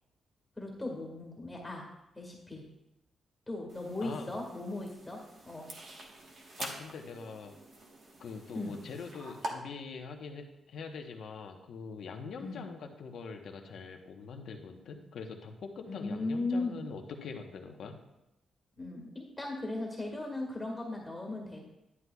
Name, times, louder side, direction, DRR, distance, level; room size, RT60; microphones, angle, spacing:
voice 1, 0.6-1.8 2.1-2.6 3.5-5.2 5.5-5.7 8.5-8.8 12.4-12.7 15.9-16.8 18.8-21.6, left 2 dB, 10° left, -1 dB, 1.7 m, -37 dB
sound 1, 3.7-9.5, right 2 dB, 45° right, 1.3 m, -46 dB
voice 2, 4.0-4.3 6.6-7.6 8.2-17.9, left 5 dB, 65° left, 4 dB, 1.0 m, -43 dB
11.0 x 9.5 x 2.3 m, 0.90 s
wide cardioid pair, 165°, 0 cm